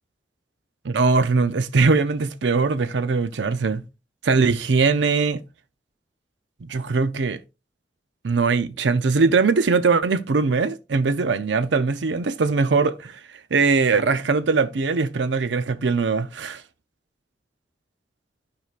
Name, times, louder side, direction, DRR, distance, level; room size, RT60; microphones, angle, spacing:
voice 1, 0.8-3.8 4.2-5.4 6.6-7.4 8.2-13.2 13.5-16.6, right 4 dB, 90° right, 0.6 m, -21 dB
12.5 x 4.9 x 2.4 m
head